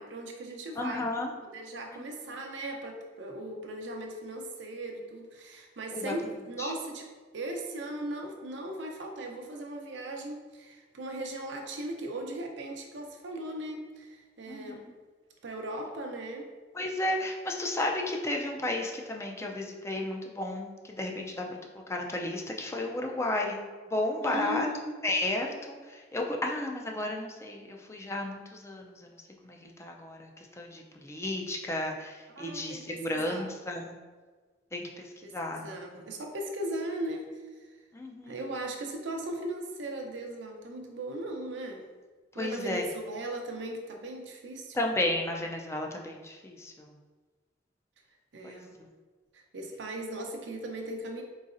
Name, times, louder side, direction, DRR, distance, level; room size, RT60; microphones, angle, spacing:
voice 1, 0.0-1.1 1.4-7.1 7.3-14.9 15.4-16.5 24.2-24.9 32.4-33.5 35.2-37.4 38.2-41.9 42.3-44.8 48.3-48.8 49.3-51.2, right 1 dB, 80° right, 2 dB, 0.6 m, -38 dB
voice 2, 0.8-1.3 1.9-2.1 5.9-6.1 6.6-6.7 14.5-14.9 16.7-21.5 21.9-23.6 23.9-24.7 25.0-29.1 29.4-30.3 30.6-34.0 34.7-35.7 37.9-38.4 42.4-42.8 44.7-46.9 48.4-48.6, left 1 dB, 15° left, 1 dB, 0.4 m, -33 dB
3.9 x 3.9 x 2.5 m, 1.4 s
head